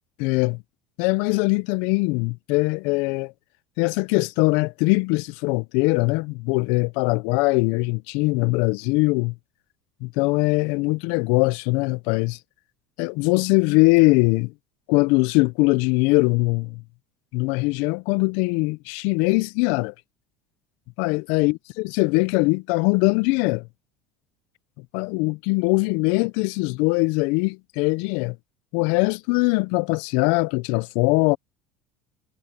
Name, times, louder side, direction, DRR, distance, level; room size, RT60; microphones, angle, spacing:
voice 1, 0.2-0.6 1.0-3.3 3.8-9.3 10.0-12.4 13.0-14.5 14.9-16.8 17.3-19.9 21.0-23.6 24.9-28.4 28.7-31.4, left 26 dB, 70° left, 0.4 m, -21 dB
supercardioid pair, 120°, 3 cm